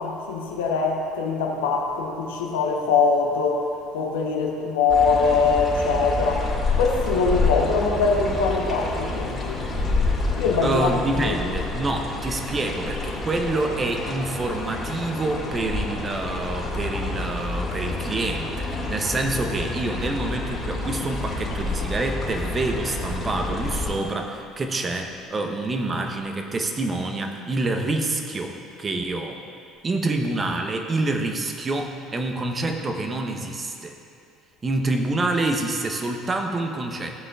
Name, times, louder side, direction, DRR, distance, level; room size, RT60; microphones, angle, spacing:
voice 1, 0.0-3.6 3.9-6.5 6.8-9.7 10.4-11.5, left 4 dB, 75° left, 1 dB, 1.0 m, -23 dB
sound 1, 4.9-23.9, left 3 dB, 30° left, 2.1 m, -28 dB
voice 2, 10.6-29.4 29.8-34.0 34.6-37.2, right 2 dB, 30° right, 4 dB, 0.9 m, -27 dB
15.0 x 7.5 x 2.4 m, 2.5 s
hypercardioid pair, 60°, 0 cm